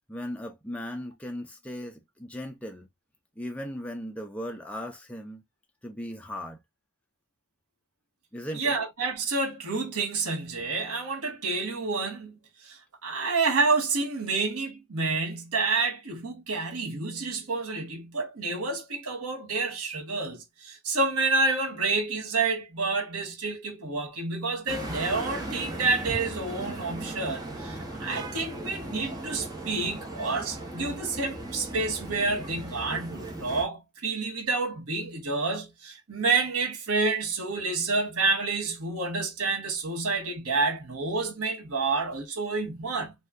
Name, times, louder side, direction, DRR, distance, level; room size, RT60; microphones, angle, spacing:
voice 1, 0.1-2.9 3.4-5.4 5.8-6.6 8.3-8.7, equal, 5° left, 0.5 m, -37 dB
voice 2, 8.5-43.1, right 3 dB, 70° right, 1.1 m, -29 dB
sound 1, 24.7-33.6, right 1 dB, 20° right, 0.9 m, -37 dB
2.7 x 2.2 x 3.3 m
head